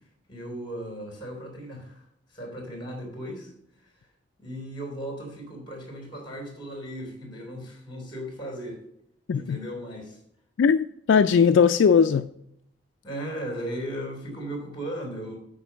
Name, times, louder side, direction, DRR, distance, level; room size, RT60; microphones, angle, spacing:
voice 1, 0.3-3.5 4.4-8.8 9.3-10.2 11.1-11.2 13.0-15.4, equal, 25° left, 3.3 m, -36 dB
voice 2, 10.6-12.3, left 6 dB, 70° left, 0.3 m, -19 dB
8.3 x 5.1 x 5.6 m
head